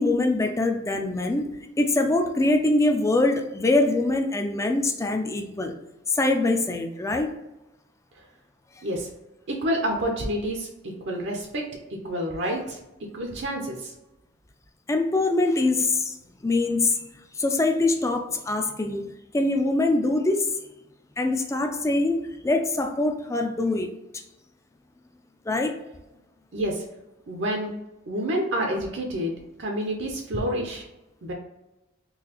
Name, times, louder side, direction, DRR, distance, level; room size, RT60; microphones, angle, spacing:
voice 1, 0.0-5.7 6.1-7.4 12.4-12.6 14.9-16.2 16.4-17.1 17.3-20.7 21.2-23.9 25.5-25.8, left 2 dB, 15° left, 0.3 m, -24 dB
voice 2, 9.5-11.6 12.0-12.8 13.1-13.9 26.5-26.8 27.3-27.7 28.1-30.8 31.2-31.3, equal, 65° right, 0.6 m, -28 dB
3.9 x 2.7 x 2.9 m
head